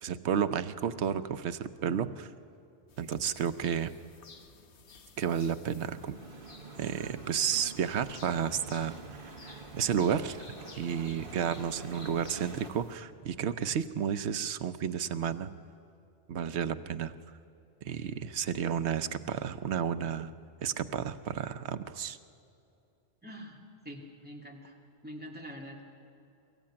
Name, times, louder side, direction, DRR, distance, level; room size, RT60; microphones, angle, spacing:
voice 1, 0.0-2.3 3.0-3.9 5.2-6.2 6.8-8.9 9.4-10.4 10.7-15.5 16.3-17.1 17.9-20.3 20.6-22.2, right 8 dB, 90° right, 12 dB, 1.0 m, -32 dB
sound 1, 2.9-12.9, left 4 dB, 90° left, 1.3 m, -54 dB
sound 2, 5.9-12.7, right 4 dB, 55° right, 1.7 m, -47 dB
voice 2, 23.2-24.8 25.0-25.8, equal, 10° right, -1 dB, 2.4 m, -45 dB
23.0 x 15.0 x 8.7 m, 2.7 s
omnidirectional pair, 1.1 m